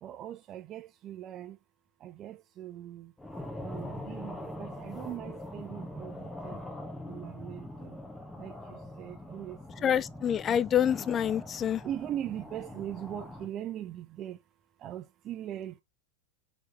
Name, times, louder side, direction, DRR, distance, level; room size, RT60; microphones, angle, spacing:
voice 1, 0.0-1.6 2.0-3.1 3.6-6.6 7.0-8.0 8.4-10.0 11.8-14.4 14.8-15.8, right 11 dB, 30° right, 1.2 m, -40 dB
sound 1, 3.2-13.5, left 1 dB, 5° left, 1.6 m, -43 dB
voice 2, 9.8-11.8, left 9 dB, 25° left, 0.5 m, -27 dB
6.1 x 4.8 x 3.3 m
figure-of-eight pair, 90°, 0 cm